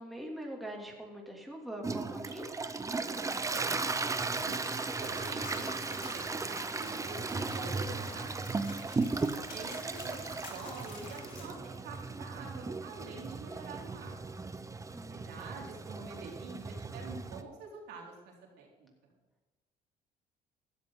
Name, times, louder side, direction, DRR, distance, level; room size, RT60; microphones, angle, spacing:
voice 1, 0.0-2.5 14.9-15.3, right 1 dB, ahead, -1 dB, 2.9 m, -43 dB
Toilet flush, 1.8-17.4, right 3 dB, 20° right, 0.8 m, -36 dB
voice 2, 3.2-4.7 5.0-8.6 9.5-14.2 15.1-18.9, right 4 dB, 80° right, -1 dB, 4.2 m, -47 dB
sound 1, 4.3-11.4, left 3 dB, 50° left, 4.3 m, -50 dB
15.5 x 12.5 x 3.9 m, 1.2 s
cardioid pair, 110°, 17 cm